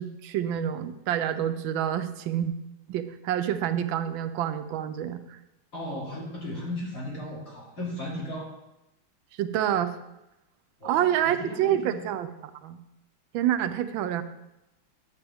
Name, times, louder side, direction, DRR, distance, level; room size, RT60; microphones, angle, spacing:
voice 1, 0.0-2.5 2.9-5.4 9.4-10.0 10.8-12.8 13.3-14.2, right 10 dB, 80° right, 10 dB, 1.3 m, -28 dB
voice 2, 5.7-8.5 10.8-12.0, left 1 dB, 40° left, -5 dB, 3.1 m, -36 dB
11.0 x 7.8 x 3.5 m, 0.91 s
omnidirectional pair, 2.2 m